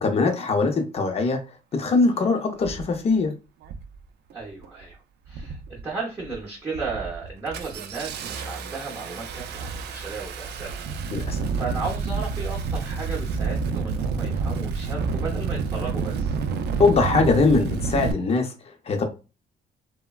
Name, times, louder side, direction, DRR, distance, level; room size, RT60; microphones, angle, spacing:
voice 1, 0.0-1.4 1.7-3.3 11.1-11.5 16.8-19.0, left 4 dB, 35° left, 0.5 m, -22 dB
Engine starting, 1.8-1.9 2.6-2.9 3.6-4.0 4.3-4.8 5.3-5.8 6.2-6.4 6.7-18.1, right 5 dB, 70° right, 0.4 m, -29 dB
voice 2, 4.3-5.0 5.3-10.9 11.1-16.4, right 4 dB, 15° right, 0.6 m, -35 dB
3.2 x 2.1 x 2.3 m
cardioid pair, 160°, 18 cm